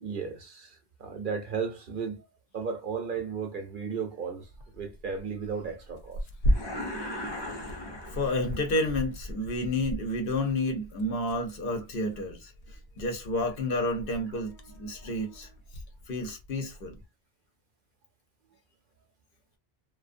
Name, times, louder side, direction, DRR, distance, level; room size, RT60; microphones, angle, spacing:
voice 1, 0.0-2.2 2.5-4.5 4.7-6.2, right 6 dB, 60° right, 0.7 m, -34 dB
Tearing, 4.4-17.0, equal, 85° left, 0.8 m, -37 dB
sound 1, 6.5-8.8, left 1 dB, 30° left, 0.5 m, -38 dB
voice 2, 8.1-15.5 16.1-17.0, left 1 dB, 60° left, 0.8 m, -30 dB
2.5 x 2.1 x 2.5 m
omnidirectional pair, 1.1 m